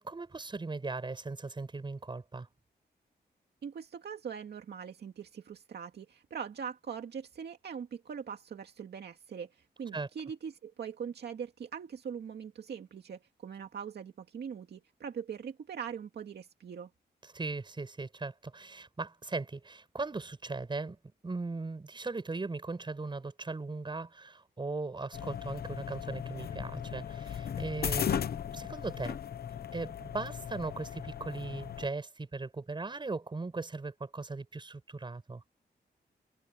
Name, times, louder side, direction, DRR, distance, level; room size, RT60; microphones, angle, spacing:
voice 1, 0.0-2.5 9.9-10.1 17.2-21.0 21.2-29.2 29.7-35.4, right 3 dB, 25° right, 7.7 m, -38 dB
voice 2, 3.6-16.9, right 7 dB, 70° right, 2.2 m, -42 dB
sound 1, 25.1-31.9, left 8 dB, 60° left, 1.0 m, -37 dB
wide cardioid pair, 150°, 18 cm